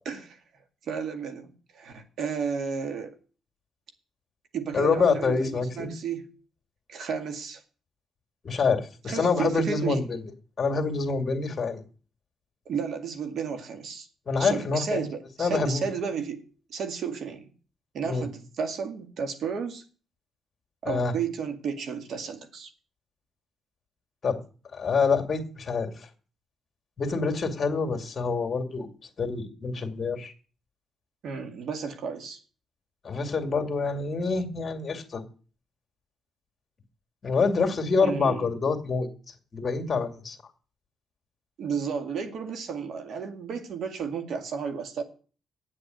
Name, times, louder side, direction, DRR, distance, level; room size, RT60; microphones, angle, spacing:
voice 1, 0.0-0.4 0.9-3.1 4.5-6.3 6.9-7.6 9.1-10.1 12.7-14.1 14.4-16.4 16.7-17.5 17.9-19.8 20.8-22.7 31.2-32.4 38.0-38.5 41.6-45.0, right 6 dB, 65° right, 6 dB, 2.1 m, -32 dB
voice 2, 4.7-5.9 8.4-10.2 10.6-11.8 14.3-15.1 15.4-15.9 18.1-18.3 20.8-21.1 24.2-24.4 24.7-26.1 27.0-28.9 29.2-30.3 33.0-35.2 37.2-39.1 39.5-40.4, left 4 dB, 40° left, 4 dB, 2.3 m, -26 dB
8.7 x 8.2 x 9.3 m, 0.39 s
cardioid pair, 90°, 0 cm